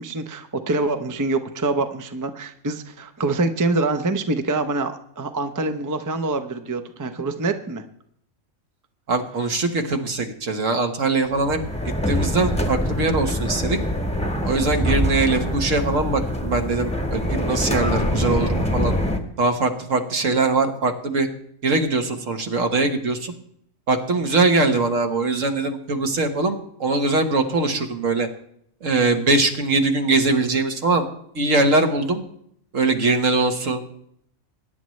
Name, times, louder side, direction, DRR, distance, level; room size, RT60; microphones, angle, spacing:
voice 1, 0.0-7.8, right 3 dB, 20° right, 8 dB, 0.5 m, -25 dB
voice 2, 9.1-11.6 12.1-13.8 14.4-18.9 19.4-21.3 21.6-23.3 23.9-28.3 28.8-31.1 31.3-32.2 32.7-33.8, right 3 dB, 65° right, 5 dB, 1.7 m, -22 dB
sound 1, 11.3-19.2, equal, 5° left, 1.0 m, -24 dB
21.5 x 10.5 x 3.2 m, 0.70 s
omnidirectional pair, 1.4 m